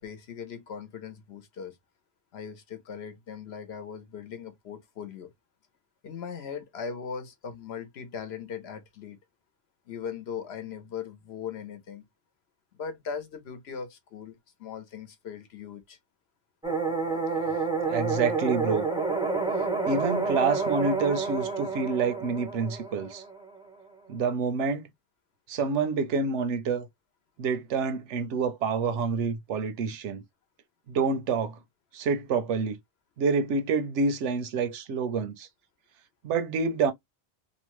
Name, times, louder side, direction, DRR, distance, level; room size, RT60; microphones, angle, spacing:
voice 1, 0.0-1.8 2.3-5.3 6.0-9.2 9.9-12.0 12.7-16.0, left 6 dB, 65° left, 1.0 m, -39 dB
sound 1, 16.6-23.6, right 4 dB, 5° right, 0.4 m, -29 dB
voice 2, 17.9-18.9 19.9-23.2 24.1-24.9 25.5-26.9 27.4-30.2 30.9-31.6 31.9-32.8 33.2-35.5 36.2-36.9, right 5 dB, 85° right, 0.9 m, -27 dB
2.9 x 2.1 x 3.0 m
omnidirectional pair, 1.2 m